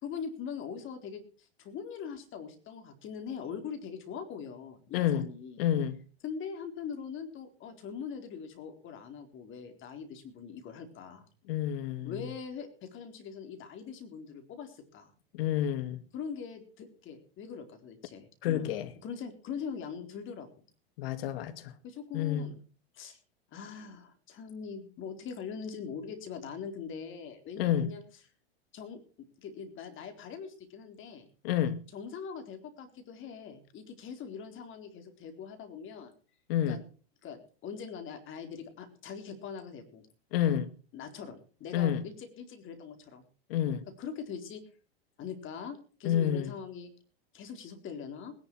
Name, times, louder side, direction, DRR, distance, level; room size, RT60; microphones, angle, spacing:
voice 1, 0.0-5.6 6.2-11.3 12.0-15.1 16.1-18.7 19.0-20.5 21.8-22.6 22.9-23.2 23.5-28.0 28.7-29.0 29.4-31.3 31.9-36.1 36.7-36.8 37.2-40.1 40.9-43.2 44.0-44.6 45.2-46.9 47.3-48.3, left 6 dB, 40° left, 4.1 m, -42 dB
voice 2, 4.9-5.3 5.6-6.0 11.5-12.3 15.3-16.0 18.4-18.9 21.0-21.7 22.1-22.5 27.6-27.9 31.4-31.8 36.5-36.8 40.3-40.7 41.7-42.0 43.5-43.9 46.0-46.5, left 10 dB, 65° left, 2.1 m, -29 dB
19.0 x 11.5 x 4.7 m
hypercardioid pair, 110°, 31 cm